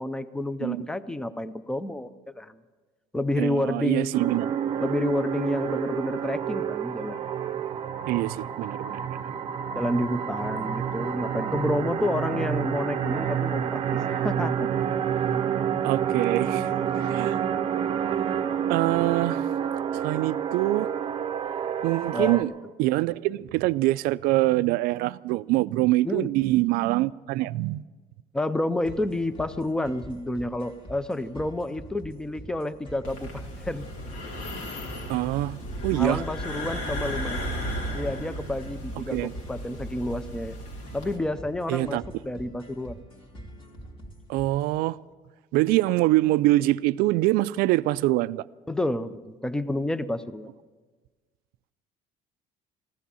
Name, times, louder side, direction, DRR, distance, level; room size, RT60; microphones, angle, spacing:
voice 1, 0.0-2.1 2.4-2.6 3.1-4.1 4.8-7.2 9.8-14.7 22.1-22.4 26.0-26.3 28.3-33.9 35.9-37.6 37.9-40.6 40.9-43.0 48.7-50.5, left 1 dB, 5° left, 0.5 m, -29 dB
voice 2, 3.4-4.5 8.1-9.2 15.8-17.4 18.7-19.5 20.0-20.9 21.8-22.5 22.8-27.8 35.1-36.2 39.0-39.3 41.7-42.0 44.3-45.0 45.5-48.4, right 18 dB, 90° right, 0.4 m, -24 dB
sound 1, 4.1-22.4, right 8 dB, 40° right, 0.7 m, -29 dB
sound 2, 28.8-44.8, equal, 35° left, 2.2 m, -46 dB
sound 3, 33.0-41.2, equal, 85° left, 3.1 m, -35 dB
16.0 x 12.5 x 6.9 m
cardioid pair, 155°, 15 cm